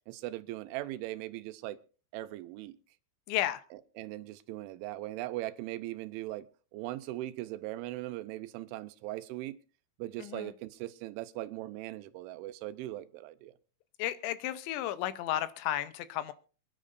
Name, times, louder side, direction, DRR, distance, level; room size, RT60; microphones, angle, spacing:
voice 1, 0.1-1.8 2.1-2.8 3.7-6.5 6.7-9.6 10.0-13.5, right 16 dB, 85° right, 3.2 m, -39 dB
voice 2, 3.3-3.6 10.2-10.5 14.0-16.3, left 13 dB, 80° left, 3.0 m, -33 dB
27.5 x 10.0 x 2.6 m
omnidirectional pair, 5.4 m